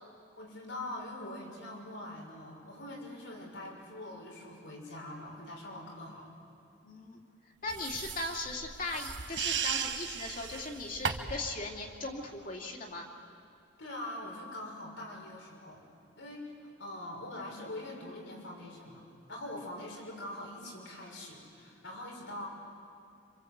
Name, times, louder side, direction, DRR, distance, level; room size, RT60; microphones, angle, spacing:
voice 1, 0.3-6.3 13.8-15.8 16.2-19.0 19.3-22.5, left 1 dB, 85° left, -1 dB, 6.1 m, -43 dB
voice 2, 6.8-7.2 7.6-13.1, left 2 dB, 45° left, 0 dB, 2.8 m, -38 dB
sound 1, 7.7-11.5, right 7 dB, 70° right, 1.3 m, -36 dB
26.5 x 26.5 x 8.2 m, 2.5 s
head